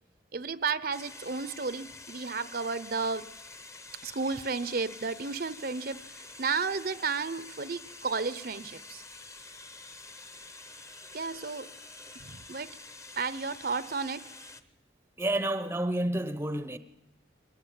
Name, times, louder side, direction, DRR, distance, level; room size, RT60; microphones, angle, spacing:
voice 1, 0.3-3.3 4.0-9.0 11.1-11.7 12.2-12.7 13.2-14.3, right 4 dB, 50° right, 0.8 m, -33 dB
sound 1, 0.9-14.6, left 3 dB, 15° left, 1.0 m, -48 dB
voice 2, 15.2-16.8, right 1 dB, 10° right, 0.8 m, -29 dB
22.5 x 19.0 x 9.2 m
head